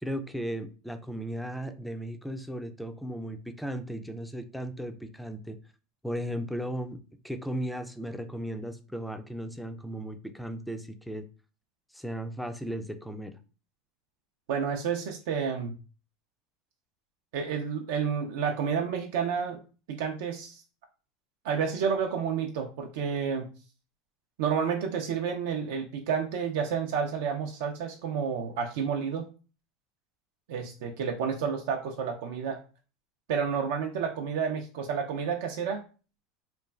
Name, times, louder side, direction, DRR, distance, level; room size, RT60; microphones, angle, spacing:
voice 1, 0.0-5.6 6.0-7.0 7.2-11.3 11.9-13.4, right 1 dB, ahead, 8 dB, 0.3 m, -36 dB
voice 2, 14.5-15.7 17.3-19.6 19.9-20.6 21.4-23.5 24.4-29.3 30.5-32.6 33.3-35.8, right 6 dB, 75° right, 3 dB, 0.4 m, -30 dB
3.0 x 2.3 x 2.2 m, 0.35 s
supercardioid pair, 110°, 0 cm